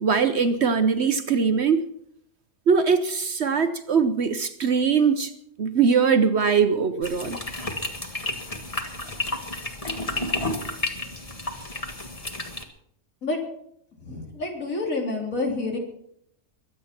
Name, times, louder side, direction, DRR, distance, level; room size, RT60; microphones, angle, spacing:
voice 1, 0.0-1.8 2.7-5.3 5.6-7.4, right 6 dB, 55° right, 10 dB, 1.0 m, -21 dB
sound 1, 7.0-12.6, left 2 dB, 25° left, 1.6 m, -31 dB
voice 2, 14.0-15.8, left 3 dB, 65° left, 1 dB, 3.8 m, -28 dB
23.0 x 8.5 x 5.9 m, 0.71 s
omnidirectional pair, 1.5 m